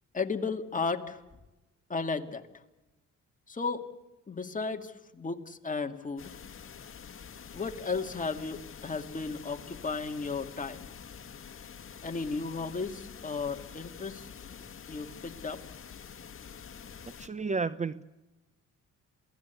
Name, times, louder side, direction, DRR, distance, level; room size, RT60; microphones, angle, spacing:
voice 1, 0.1-1.2 1.9-2.4 3.5-3.9 4.3-6.3 7.5-10.9 12.0-14.3 14.9-15.6, left 4 dB, 25° left, 5 dB, 2.2 m, -34 dB
sound 1, 6.2-17.3, left 7 dB, 45° left, 1.9 m, -47 dB
voice 2, 17.2-18.0, right 4 dB, 25° right, 15 dB, 0.7 m, -32 dB
27.5 x 18.0 x 8.3 m, 1.0 s
cardioid pair, 90°, 30 cm